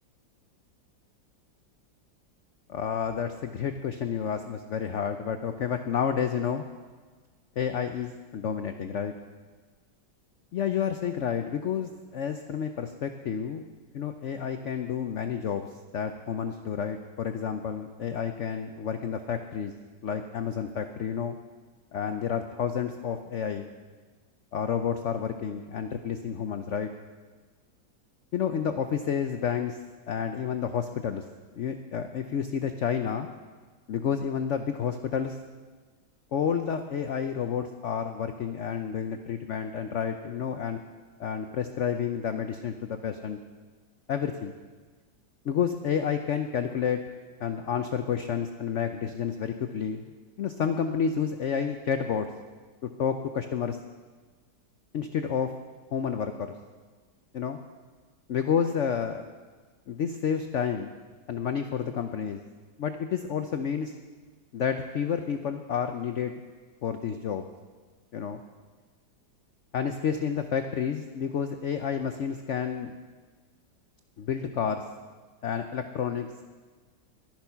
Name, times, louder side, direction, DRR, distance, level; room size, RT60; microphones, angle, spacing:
voice 1, 2.7-6.6 7.6-9.1 10.5-13.7 13.9-15.7 15.9-19.7 20.0-21.4 21.9-23.7 24.5-26.9 28.3-29.8 30.1-31.2 31.6-33.3 33.9-35.4 36.3-40.8 41.2-43.4 44.1-44.5 45.4-47.0 47.4-52.3 52.8-53.8 54.9-55.5 55.9-56.5 57.3-57.6 58.3-59.3 59.9-60.9 61.3-62.4 62.8-63.9 64.5-66.3 66.8-67.4 68.1-68.4 69.7-72.9 74.2-74.8 75.4-76.5, left 7 dB, 90° left, 7 dB, 0.6 m, -30 dB
12.5 x 10.5 x 5.6 m, 1.4 s
omnidirectional pair, 2.0 m